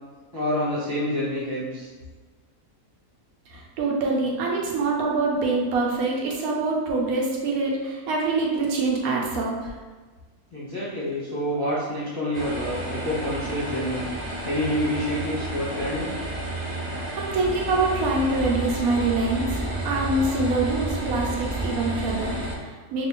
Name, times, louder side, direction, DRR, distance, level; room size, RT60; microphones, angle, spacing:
voice 1, 0.3-1.9 10.5-16.1 17.1-17.2, equal, 20° left, -10 dB, 0.7 m, -28 dB
voice 2, 3.5-9.8 16.9-23.1, right 3 dB, 75° right, -2 dB, 1.0 m, -25 dB
sound 1, 12.3-22.5, right 1 dB, 55° right, 0.5 m, -31 dB
2.9 x 2.5 x 3.6 m, 1.4 s
omnidirectional pair, 1.6 m